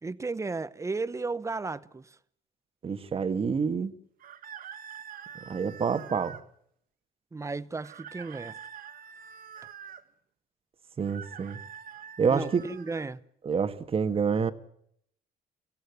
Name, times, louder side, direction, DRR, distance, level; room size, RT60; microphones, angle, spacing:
voice 1, 0.0-2.2 7.3-8.6 12.3-13.2, right 3 dB, 15° right, 0.8 m, -34 dB
voice 2, 2.8-3.9 5.5-6.4 11.0-11.6 12.2-12.6 13.4-14.5, right 6 dB, 35° right, 1.6 m, -27 dB
sound 1, 4.2-6.4 7.8-10.0 11.0-13.0, right 8 dB, 55° right, 1.6 m, -45 dB
24.5 x 16.0 x 9.5 m
cardioid pair, 110°, 17 cm